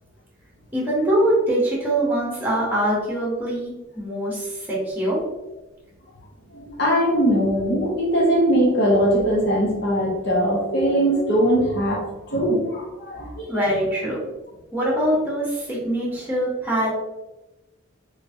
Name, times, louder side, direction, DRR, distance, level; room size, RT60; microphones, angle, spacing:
voice 1, 0.7-5.2 13.5-14.2 14.7-16.9, right 1 dB, 10° right, -4 dB, 1.1 m, -23 dB
voice 2, 6.5-13.6, equal, 55° left, -2 dB, 1.0 m, -21 dB
3.3 x 3.1 x 2.7 m, 1.0 s
head